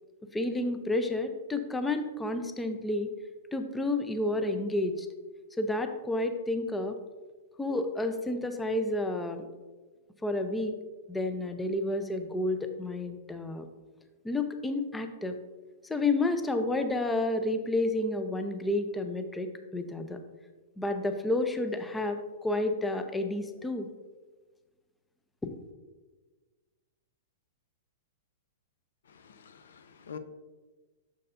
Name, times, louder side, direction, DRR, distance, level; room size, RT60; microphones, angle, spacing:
voice 1, 0.3-3.1 3.5-5.1 5.6-7.0 7.6-9.4 10.2-10.7 11.1-13.7 14.2-15.4 15.9-20.2 20.8-23.9 25.4-25.5, left 2 dB, 10° left, 7 dB, 0.5 m, -30 dB
voice 2, 29.1-30.2, left 7 dB, 80° left, 11 dB, 0.5 m, -46 dB
6.6 x 6.6 x 2.5 m, 1.3 s
hypercardioid pair, 135°, 0 cm